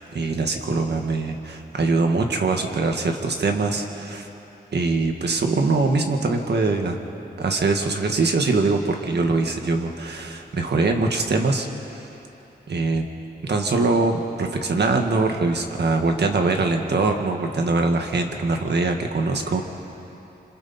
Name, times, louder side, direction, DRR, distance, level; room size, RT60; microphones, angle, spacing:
voice 1, 0.1-4.3 4.7-7.0 7.4-11.7 12.7-13.1 13.4-19.6, right 3 dB, 75° right, 3 dB, 1.8 m, -22 dB
27.0 x 26.5 x 4.4 m, 3.0 s
wide cardioid pair, 125°, 17 cm